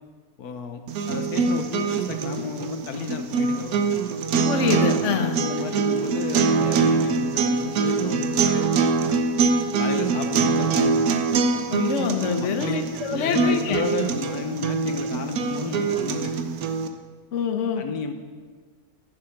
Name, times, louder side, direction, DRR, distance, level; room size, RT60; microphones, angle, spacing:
voice 1, 0.4-0.8 1.1-3.8 5.1-8.7 9.8-11.1 12.4-12.8 13.1-16.3 17.8-18.1, left 5 dB, 80° left, 7 dB, 1.5 m, -33 dB
sound 1, 0.9-16.9, right 4 dB, 70° right, 1.3 m, -24 dB
voice 2, 4.5-5.4 11.7-13.8 17.3-17.8, left 6 dB, 55° left, 6 dB, 1.2 m, -25 dB
13.5 x 9.9 x 5.9 m, 1.5 s
omnidirectional pair, 1.6 m